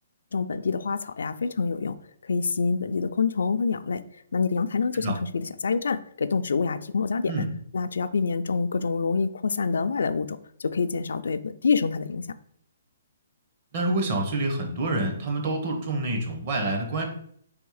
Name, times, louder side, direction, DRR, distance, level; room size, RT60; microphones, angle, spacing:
voice 1, 0.3-2.0 2.2-4.0 4.3-7.5 7.7-12.2, left 5 dB, 80° left, 11 dB, 0.3 m, -26 dB
voice 2, 13.7-17.0, right 2 dB, 35° right, 2 dB, 0.9 m, -27 dB
3.5 x 3.1 x 4.8 m, 0.66 s
hypercardioid pair, 170°, 0 cm